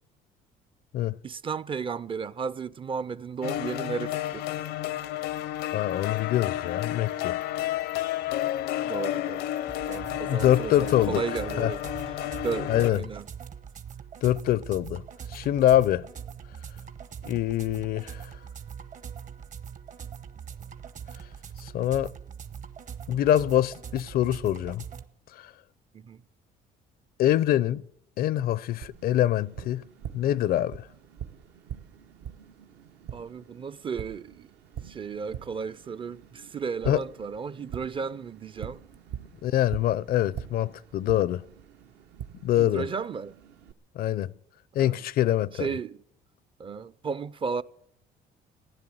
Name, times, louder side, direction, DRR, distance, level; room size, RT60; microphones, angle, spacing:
voice 1, 1.2-4.5 8.8-9.6 9.9-11.8 12.4-13.3 25.9-26.2 33.1-34.5 34.8-38.8 42.6-43.4 44.8-45.0 45.5-46.0 46.6-47.6, right 5 dB, 30° right, 0.5 m, -34 dB
sound 1, 3.4-12.9, left 13 dB, 85° left, 0.8 m, -31 dB
voice 2, 5.7-7.4 10.3-11.2 11.6-11.7 12.7-13.0 14.2-15.0 15.3-16.1 17.3-18.3 21.6-22.1 23.1-24.8 25.3-25.5 27.2-27.8 28.2-29.8 30.1-30.9 36.9-37.0 39.4-41.4 42.4-42.9 44.0-44.3 44.7-45.7, left 12 dB, 60° left, 0.5 m, -24 dB
sound 2, 9.7-25.0, right 7 dB, 50° right, 1.1 m, -42 dB
Tap, 28.8-43.7, right 9 dB, 75° right, 1.1 m, -44 dB
15.5 x 10.5 x 7.7 m
cardioid pair, 110°, 17 cm